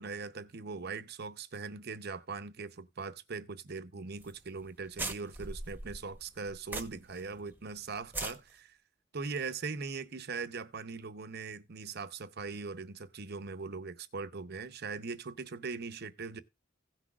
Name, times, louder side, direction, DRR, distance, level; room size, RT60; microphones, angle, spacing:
voice 1, 0.0-8.8 9.1-16.4, right 4 dB, 55° right, 0.8 m, -40 dB
sound 1, 4.2-4.4 4.6-4.7 5.0-7.2 7.5-7.6 8.0-8.4, right 2 dB, 10° right, 1.0 m, -39 dB
16.5 x 6.1 x 2.4 m
head